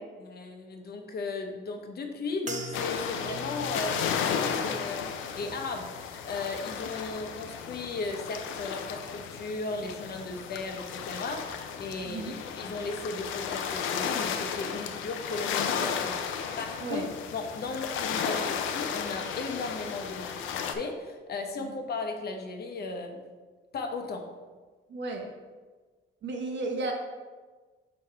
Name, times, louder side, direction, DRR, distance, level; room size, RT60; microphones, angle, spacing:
voice 1, 0.2-17.0 17.3-23.2 23.7-24.3, left 3 dB, 55° left, 4 dB, 0.9 m, -36 dB
sound 1, 2.5-7.0 7.3-8.0 8.6-8.8, right 2 dB, 40° right, 0.8 m, -45 dB
sound 2, 2.7-20.8, left 7 dB, 85° left, 0.5 m, -34 dB
voice 2, 12.0-12.4 16.8-17.0 21.6-21.7 24.9-25.3 26.2-26.9, right 3 dB, 65° right, 2 dB, 1.1 m, -33 dB
5.0 x 4.1 x 4.6 m, 1.4 s
cardioid pair, 90°, 20 cm